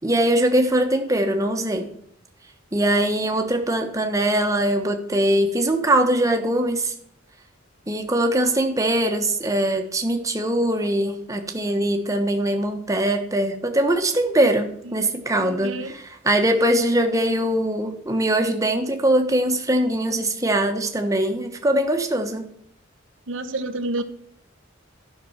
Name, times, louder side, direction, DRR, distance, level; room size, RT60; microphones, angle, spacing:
voice 1, 0.0-1.9 2.7-6.9 7.9-22.5, right 1 dB, 15° right, 5 dB, 1.2 m, -22 dB
voice 2, 15.4-15.9 23.3-24.0, right 2 dB, 85° right, 10 dB, 1.0 m, -29 dB
11.5 x 5.9 x 5.8 m, 0.69 s
head